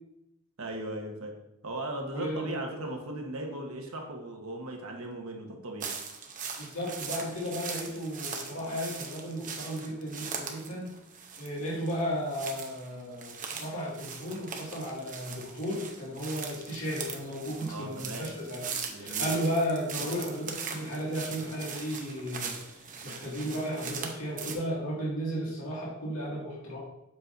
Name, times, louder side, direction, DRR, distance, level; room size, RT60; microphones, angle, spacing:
voice 1, 0.6-1.3 1.6-5.9 17.6-18.3 18.9-19.3, right 1 dB, 75° right, 2 dB, 1.2 m, -37 dB
voice 2, 2.1-2.5 6.6-10.9 11.4-13.3 13.6-18.6 19.0-26.8, equal, 70° left, -6 dB, 2.2 m, -34 dB
sound 1, 5.8-24.5, right 6 dB, 35° right, 0.8 m, -40 dB
7.5 x 6.0 x 2.7 m, 0.86 s
head